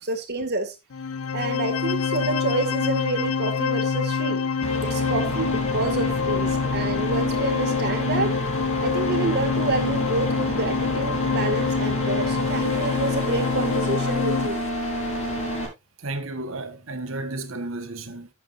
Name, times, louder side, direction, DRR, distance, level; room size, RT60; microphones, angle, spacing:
voice 1, 0.0-0.7 1.3-4.4 4.8-8.4 8.8-14.6, right 3 dB, 50° right, 2.2 m, -28 dB
sound 1, 0.9-14.5, left 5 dB, 80° left, 0.5 m, -26 dB
sound 2, 4.6-15.7, right 1 dB, 35° left, 5.6 m, -30 dB
voice 2, 16.0-18.3, right 2 dB, 65° right, 1.5 m, -32 dB
11.5 x 8.7 x 2.6 m
head